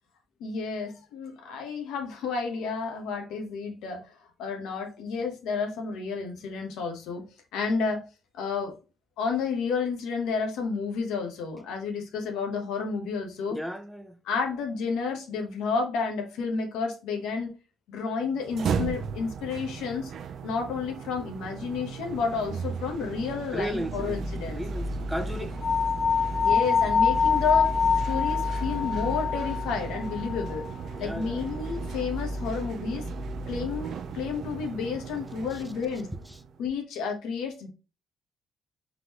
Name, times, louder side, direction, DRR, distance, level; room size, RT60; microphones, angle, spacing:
voice 1, 0.4-7.3 7.5-8.0 8.3-8.7 9.2-13.6 14.2-17.5 17.9-20.1 20.4-24.6 26.4-27.7 28.0-30.7 31.0-33.0 33.5-36.1 36.6-37.7, left 5 dB, 90° left, 1.1 m, -31 dB
voice 2, 13.5-14.2 23.5-25.6 31.0-31.4, equal, 5° right, 0.6 m, -35 dB
sound 1, 18.4-36.5, right 3 dB, 65° right, 0.5 m, -35 dB
sound 2, 25.6-30.7, left 6 dB, 55° left, 0.4 m, -25 dB
3.8 x 3.6 x 2.9 m
cardioid pair, 90°, 0 cm